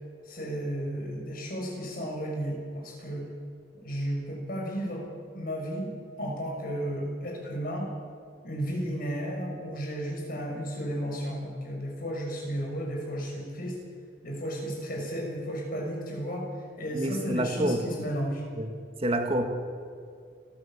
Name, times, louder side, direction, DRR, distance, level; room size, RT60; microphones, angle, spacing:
voice 1, 0.2-3.2 3.7-5.0 5.3-5.9 6.2-7.9 8.4-13.8 14.2-16.5 16.8-18.4, equal, 50° left, 0 dB, 6.3 m, -33 dB
voice 2, 16.9-17.8 18.6-18.7 19.0-19.4, right 1 dB, 35° right, 5 dB, 2.2 m, -27 dB
28.5 x 14.0 x 7.4 m, 2.3 s
head